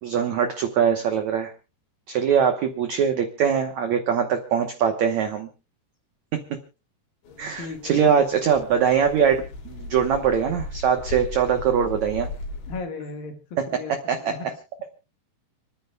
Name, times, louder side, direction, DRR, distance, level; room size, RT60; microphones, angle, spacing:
voice 1, 0.0-1.5 2.1-5.5 7.4-12.3 14.1-14.3, right 7 dB, 75° right, 5 dB, 1.7 m, -22 dB
sound 1, 7.2-12.8, left 3 dB, 85° left, 4.9 m, -37 dB
voice 2, 7.6-8.2 12.7-13.4 13.7-13.9 14.2-14.5, left 4 dB, 65° left, 4 dB, 3.2 m, -35 dB
30.0 x 10.0 x 2.3 m, 0.30 s
omnidirectional pair, 4.9 m